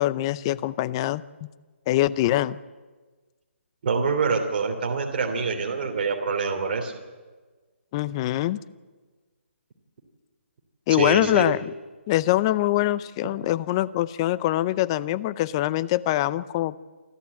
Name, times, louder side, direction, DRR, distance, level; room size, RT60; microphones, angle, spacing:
voice 1, 0.0-1.5 1.9-2.6 7.9-8.6 10.9-11.7 12.1-16.8, left 15 dB, 25° left, 17 dB, 0.5 m, -24 dB
voice 2, 3.8-6.9 10.9-11.5, right 5 dB, 45° right, 3 dB, 3.1 m, -26 dB
28.0 x 12.0 x 8.5 m, 1.3 s
hypercardioid pair, 160°, 7 cm